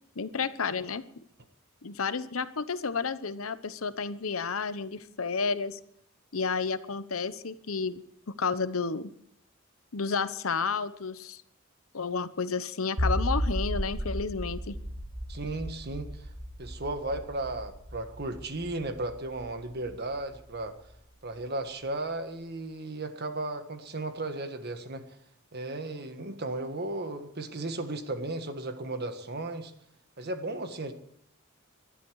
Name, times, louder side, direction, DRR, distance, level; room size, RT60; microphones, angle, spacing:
voice 1, 0.2-1.0 1.8-5.8 6.3-8.0 8.3-9.1 9.9-11.4 11.9-14.8, left 5 dB, 80° left, 13 dB, 0.9 m, -31 dB
sound 1, 13.0-20.2, equal, 75° right, 5.2 m, -34 dB
voice 2, 15.3-16.3 16.6-20.8 21.2-25.1 25.5-29.7 30.2-30.9, right 2 dB, 50° right, 8 dB, 1.6 m, -35 dB
19.0 x 13.0 x 4.8 m, 0.67 s
head